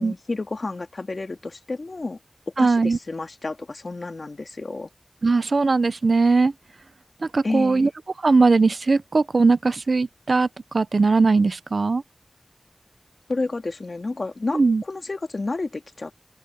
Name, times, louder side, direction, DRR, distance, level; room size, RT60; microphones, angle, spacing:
voice 1, 0.0-2.2 2.6-4.9 7.4-7.9 13.3-16.1, left 3 dB, 75° left, 2.3 m, -30 dB
voice 2, 2.6-3.0 5.2-6.5 7.3-7.9 8.2-10.5 10.7-12.0 14.5-14.8, right 3 dB, 90° right, 0.6 m, -19 dB
open air
wide cardioid pair, 50°, 0 cm